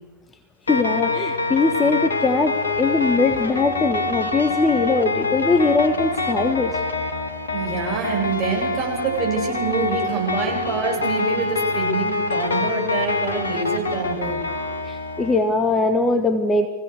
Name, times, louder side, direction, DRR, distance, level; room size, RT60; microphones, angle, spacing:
sound 1, 0.7-15.4, left 3 dB, 70° left, 1.9 m, -25 dB
voice 1, 0.7-6.8 14.8-16.7, left 3 dB, 15° left, 8 dB, 1.4 m, -21 dB
voice 2, 7.5-14.4, right 4 dB, 30° right, -2 dB, 7.9 m, -26 dB
23.5 x 16.5 x 6.7 m, 1.3 s
figure-of-eight pair, 90°, 0 cm